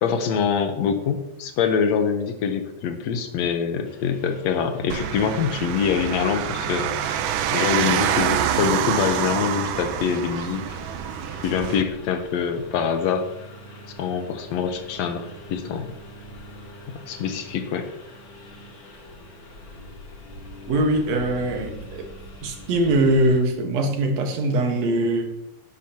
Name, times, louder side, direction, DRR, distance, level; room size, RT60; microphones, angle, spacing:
voice 1, 0.0-7.2 7.5-10.6 11.4-13.3 14.0-15.9 17.1-17.9, left 7 dB, 70° left, 1.7 m, -25 dB
Engine, 3.8-23.4, equal, 40° left, 2.3 m, -43 dB
sound 1, 4.9-11.8, right 10 dB, 80° right, 2.1 m, -26 dB
voice 2, 20.7-22.0 22.4-25.2, right 1 dB, 60° right, 2.2 m, -22 dB
11.5 x 10.5 x 2.9 m
omnidirectional pair, 4.0 m